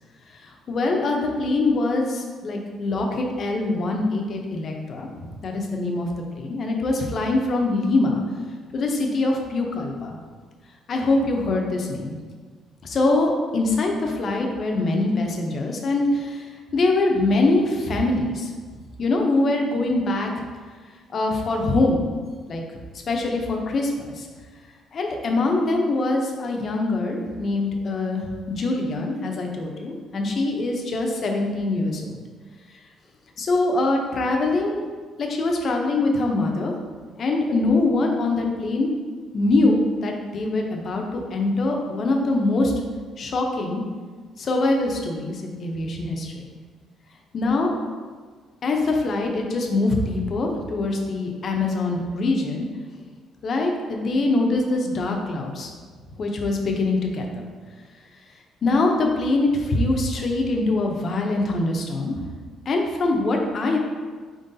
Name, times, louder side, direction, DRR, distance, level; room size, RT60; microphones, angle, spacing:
voice 1, 0.4-6.1 6.4-8.2 8.7-10.2 10.9-12.1 12.8-18.5 19.0-20.3 21.1-22.0 22.5-22.6 23.1-24.3 24.9-32.2 33.4-34.8 35.2-36.7 37.2-38.9 39.3-42.7 43.2-43.8 44.4-46.3 47.3-47.8 48.6-52.7 53.4-55.7 56.2-57.4 58.6-62.2 62.7-63.8, left 2 dB, 40° left, 1 dB, 0.5 m, -23 dB
4.5 x 3.7 x 2.7 m, 1.5 s
cardioid pair, 155°, 0 cm